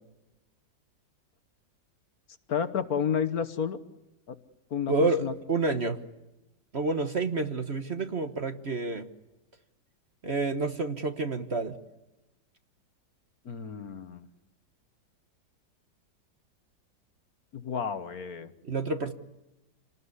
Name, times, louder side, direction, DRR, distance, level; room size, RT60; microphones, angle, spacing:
voice 1, 2.5-3.8 4.3-4.4 4.7-4.9 5.2-5.3 13.4-14.3 17.5-18.5, left 7 dB, 60° left, 11 dB, 1.6 m, -31 dB
voice 2, 4.9-6.0 6.7-9.1 10.2-11.8 18.6-19.1, right 3 dB, 40° right, 7 dB, 1.4 m, -29 dB
28.0 x 19.5 x 9.7 m, 1.0 s
omnidirectional pair, 1.9 m